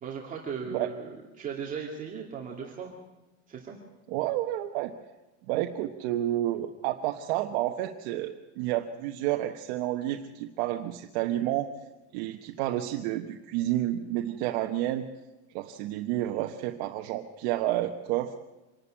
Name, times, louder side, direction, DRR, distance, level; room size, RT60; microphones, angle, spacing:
voice 1, 0.0-2.9 3.5-3.8, right 6 dB, 25° right, -2 dB, 2.4 m, -37 dB
voice 2, 4.1-4.9 5.5-11.7 12.1-15.1 15.5-18.3, right 14 dB, 70° right, 4 dB, 1.3 m, -30 dB
26.0 x 12.0 x 8.9 m, 1.1 s
cardioid pair, 170°, 33 cm